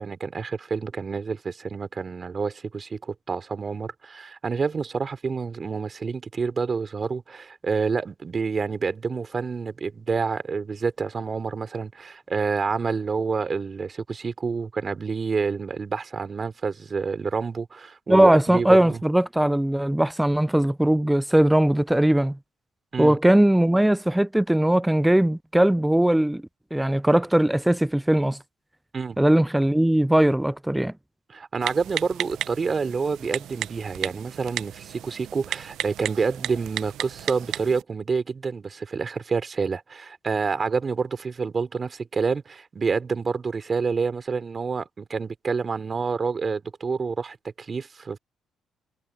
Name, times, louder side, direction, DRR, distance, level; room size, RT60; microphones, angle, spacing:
voice 1, 0.0-19.0 22.9-23.2 28.9-29.2 31.3-48.2, right 5 dB, 40° right, 3.0 m, -28 dB
voice 2, 18.1-22.4 23.0-26.4 26.7-28.4 29.2-30.9, right 1 dB, 5° right, 0.3 m, -20 dB
Typing, 31.6-37.8, right 12 dB, 75° right, 0.6 m, -34 dB
supercardioid pair, 65°, 0 cm